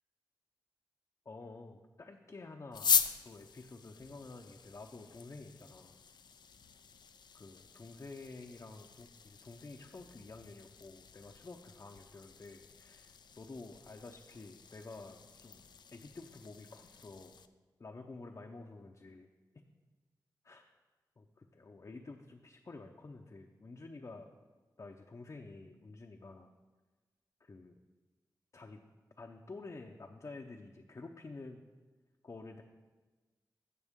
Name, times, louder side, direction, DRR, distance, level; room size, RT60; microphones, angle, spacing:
voice 1, 1.3-5.9 7.3-15.6 15.9-17.3 17.8-19.3 19.5-19.6 20.4-20.7 21.2-24.3 24.8-26.5 27.4-27.7 28.5-28.8 29.2-31.6 32.2-32.6, left 3 dB, 45° left, 2 dB, 0.7 m, -50 dB
sound 1, 2.7-17.5, left 6 dB, 85° left, 0.4 m, -40 dB
15.0 x 6.2 x 3.7 m, 1.3 s
cardioid pair, 60°, 7 cm